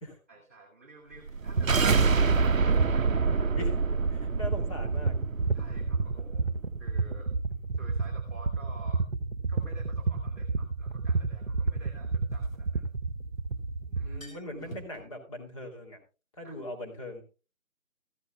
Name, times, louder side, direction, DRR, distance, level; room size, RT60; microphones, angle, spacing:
voice 1, 0.3-3.6 5.5-6.5 6.8-7.3 7.7-9.1 9.5-12.9 13.9-14.2 16.4-16.5, right 2 dB, 10° right, -8 dB, 0.9 m, -51 dB
sound 1, 1.3-6.4, right 5 dB, 75° right, 0.7 m, -26 dB
sound 2, 1.5-14.2, right 4 dB, 50° right, 1.1 m, -31 dB
voice 2, 4.1-5.2 6.5-6.6 13.9-16.0 16.4-17.2, left 1 dB, 25° left, 0 dB, 2.7 m, -40 dB
sound 3, 9.6-9.7 12.1-13.4 13.7-13.8 14.0-15.0, right 1 dB, 75° left, 3.1 m, -48 dB
14.0 x 14.0 x 2.2 m, 0.32 s
figure-of-eight pair, 155°, 40 cm